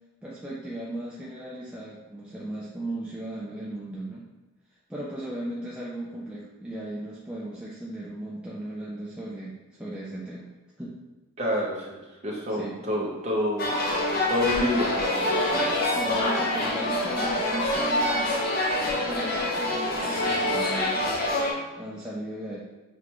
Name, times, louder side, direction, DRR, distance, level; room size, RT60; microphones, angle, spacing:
voice 1, 0.2-4.2 4.9-10.5 10.8-11.0 12.6-12.8 15.9-18.5 19.0-21.0 21.8-22.6, right 1 dB, 5° right, -6 dB, 0.3 m, -36 dB
voice 2, 11.4-13.7 14.3-15.8, left 1 dB, 30° right, -4 dB, 0.8 m, -28 dB
sound 1, 13.6-21.5, left 1 dB, 45° left, 0.7 m, -26 dB
5.9 x 2.2 x 3.0 m, 1.2 s
head